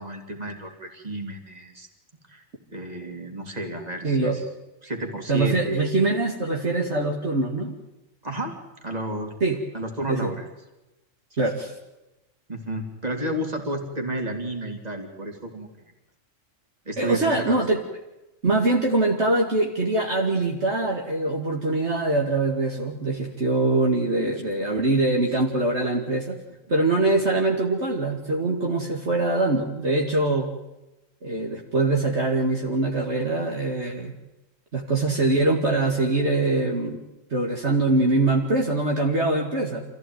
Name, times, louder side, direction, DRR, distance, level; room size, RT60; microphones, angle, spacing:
voice 1, 0.0-1.9 2.3-2.4 2.7-4.4 4.8-5.8 8.2-9.3 9.7-10.5 11.3-11.5 12.5-15.7 16.9-17.6, right 1 dB, 30° right, 3 dB, 3.3 m, -32 dB
voice 2, 4.0-4.4 5.3-7.7 9.4-9.6 10.1-10.2 11.4-11.7 17.0-17.8 18.4-26.4 26.7-30.5 31.2-34.1 34.7-37.0 37.3-39.8, right 2 dB, 55° right, 0 dB, 2.5 m, -23 dB
26.5 x 15.0 x 9.4 m, 0.98 s
omnidirectional pair, 1.4 m